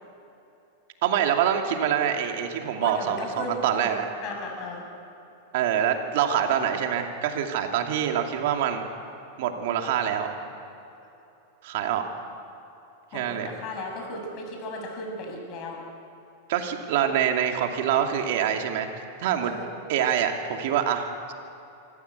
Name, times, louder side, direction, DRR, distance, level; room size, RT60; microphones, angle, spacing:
voice 1, 1.0-4.0 5.5-8.8 9.4-10.3 11.6-12.1 13.1-13.5 16.5-18.9 19.2-19.5 19.9-21.3, right 9 dB, 65° right, 4 dB, 2.5 m, -25 dB
voice 2, 2.8-4.8 13.1-15.8 19.4-19.7, left 2 dB, 45° left, 1 dB, 7.1 m, -36 dB
25.5 x 15.0 x 8.3 m, 2.8 s
hypercardioid pair, 120°, 0 cm